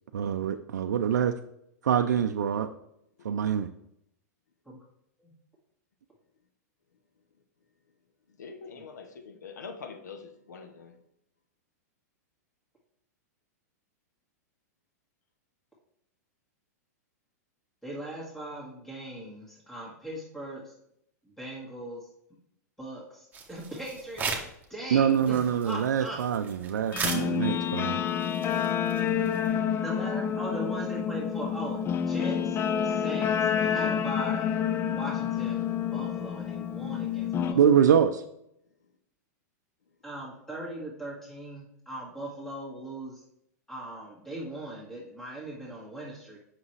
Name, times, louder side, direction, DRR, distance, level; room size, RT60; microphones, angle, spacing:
voice 1, 0.1-1.4 1.8-2.7 3.2-3.7 24.9-28.0 37.5-38.2, right 8 dB, 80° right, 7 dB, 0.4 m, -24 dB
voice 2, 8.4-11.0, left 5 dB, 85° left, 7 dB, 0.9 m, -45 dB
voice 3, 17.8-20.7 21.2-22.1 22.8-24.3 24.7-26.2 29.8-34.5 34.8-37.6 40.0-43.2 43.7-46.4, right 1 dB, 5° left, -5 dB, 1.9 m, -39 dB
sound 1, 23.3-24.6 25.0-29.6, right 5 dB, 20° right, 1.2 m, -37 dB
Guitar, 26.9-37.5, left 8 dB, 25° left, 0.4 m, -28 dB
7.2 x 5.9 x 3.2 m, 0.76 s
hypercardioid pair, 115°, 9 cm